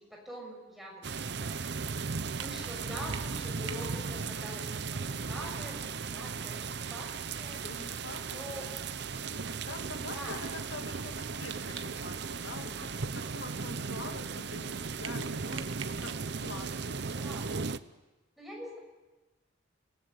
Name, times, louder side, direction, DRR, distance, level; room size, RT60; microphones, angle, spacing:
voice 1, 0.0-1.6 2.3-7.6 8.3-8.7 10.1-10.4 17.1-17.5 18.4-18.8, equal, ahead, -1 dB, 6.4 m, -45 dB
sound 1, 1.0-17.8, right 5 dB, 55° right, 0.7 m, -36 dB
sound 2, 1.2-4.9 5.2-5.3 5.5-5.6 6.0-8.7 9.0-9.1 9.5-12.0 12.2-16.2, right 8 dB, 85° right, 1.4 m, -48 dB
voice 2, 7.6-8.7 9.3-17.1, left 2 dB, 75° left, 4 dB, 2.3 m, -46 dB
27.5 x 18.0 x 8.1 m, 1.1 s
head